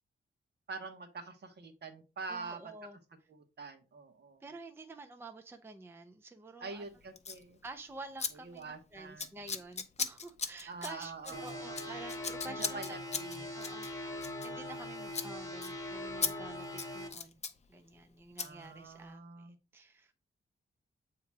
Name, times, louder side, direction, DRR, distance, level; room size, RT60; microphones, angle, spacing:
voice 1, 0.7-2.6 3.3-4.4 6.6-7.6 8.4-9.4 10.7-11.9 12.6-13.5 18.4-19.6, right 4 dB, 50° right, 1.2 m, -45 dB
voice 2, 2.3-3.0 4.4-6.8 7.6-12.8 13.5-13.9 14.4-17.4 17.7-20.2, right 3 dB, 10° right, 0.5 m, -49 dB
Scissors, 7.2-7.4 8.2-8.3 8.6-8.8 9.2-14.8 15.1-15.3 15.6-15.7 16.2-16.3 16.6-17.6 18.4-18.5, left 5 dB, 30° left, 0.6 m, -38 dB
sound 1, 11.3-17.1, left 1 dB, 15° left, 1.6 m, -42 dB
8.4 x 3.0 x 4.6 m
wide cardioid pair, 165°, 21 cm